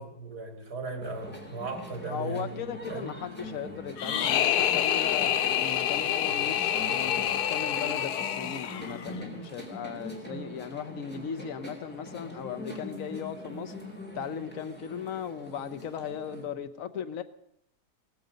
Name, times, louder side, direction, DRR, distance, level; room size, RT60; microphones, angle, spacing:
voice 1, 0.0-2.6 2.9-3.1, right 3 dB, 80° right, 3.3 m, -37 dB
sound 1, 1.0-16.4, left 1 dB, 5° left, 3.4 m, -43 dB
voice 2, 2.1-13.7 14.1-17.2, left 7 dB, 60° left, 1.3 m, -37 dB
sound 2, 4.0-9.1, left 10 dB, 85° left, 1.4 m, -27 dB
16.5 x 15.5 x 5.2 m
omnidirectional pair, 1.7 m